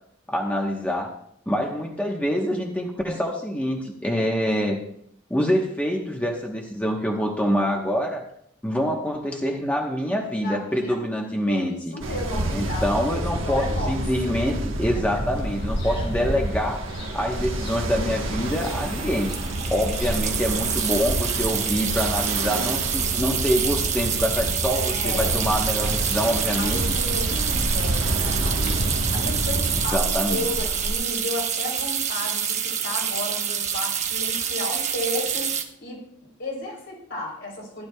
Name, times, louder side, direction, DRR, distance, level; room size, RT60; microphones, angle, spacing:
voice 1, 0.3-1.1 1.5-4.8 5.3-8.2 8.6-11.9 12.5-16.8 17.1-19.3 19.7-26.9 29.9-30.5, equal, 5° left, 0 dB, 1.1 m, -25 dB
voice 2, 10.4-11.0 11.5-14.0 14.2-14.4 15.2-15.3 15.8-16.1 18.9-19.4 23.0-23.4 24.7-25.4 26.1-28.8 29.1-35.5 35.8-37.9, left 1 dB, 60° left, -1 dB, 3.7 m, -34 dB
Ocean, 12.0-29.9, right 1 dB, 75° right, 1.3 m, -28 dB
Ocean 2, 15.3-31.0, equal, 85° left, 4.2 m, -37 dB
sound 1, 16.5-16.6 16.8-17.1 18.5-35.6, right 8 dB, 35° right, 1.0 m, -27 dB
15.0 x 11.5 x 2.3 m, 0.71 s
head